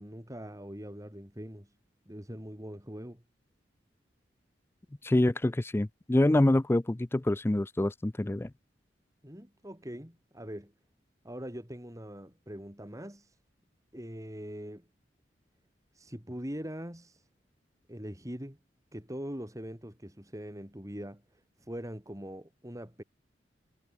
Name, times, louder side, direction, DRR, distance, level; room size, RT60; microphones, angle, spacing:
voice 1, 0.0-1.7 2.1-3.2 9.2-10.7 11.2-13.4 13.9-14.9 15.9-17.2 17.9-18.6 18.9-23.0, equal, 20° right, 5.1 m, -42 dB
voice 2, 5.0-8.5, left 1 dB, 15° left, 0.4 m, -26 dB
head